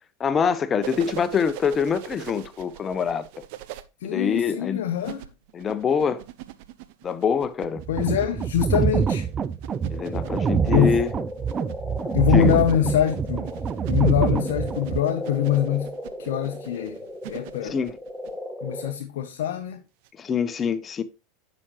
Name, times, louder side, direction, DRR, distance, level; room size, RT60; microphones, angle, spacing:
voice 1, 0.2-3.2 4.0-4.8 5.5-6.2 7.0-7.8 9.9-11.1 12.3-12.6 17.7-17.9 20.2-21.0, left 6 dB, 30° left, 0.9 m, -25 dB
sound 1, 0.8-3.8 5.0-18.4 20.0-20.1, right 14 dB, 60° right, 0.8 m, -41 dB
voice 2, 4.0-5.3 7.9-9.3 10.7-11.0 12.1-13.5 13.9-15.9 16.2-17.0 17.3-17.8 18.6-19.8, left 11 dB, 65° left, 0.8 m, -24 dB
sound 2, 7.8-15.0, right 7 dB, 30° right, 0.5 m, -25 dB
sound 3, 8.7-18.9, left 1 dB, ahead, 1.4 m, -36 dB
9.8 x 6.3 x 3.0 m
figure-of-eight pair, 80°, 0 cm